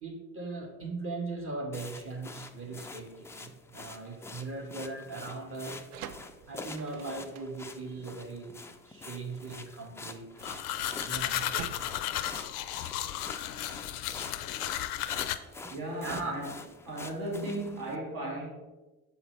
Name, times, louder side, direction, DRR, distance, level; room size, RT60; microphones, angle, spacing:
voice 1, 0.0-5.9 6.5-8.5 8.9-11.7 16.0-16.3, right 3 dB, 30° right, 2 dB, 1.6 m, -39 dB
sound 1, 1.7-18.0, left 3 dB, 5° left, 0.3 m, -46 dB
sound 2, 5.8-13.2, right 9 dB, 80° right, 0.5 m, -49 dB
sound 3, 10.4-15.4, left 13 dB, 80° left, 0.5 m, -34 dB
voice 2, 15.7-16.5 16.8-18.5, right 1 dB, 50° right, -3 dB, 2.4 m, -35 dB
6.8 x 5.6 x 3.3 m, 1.2 s
hypercardioid pair, 55°, 45 cm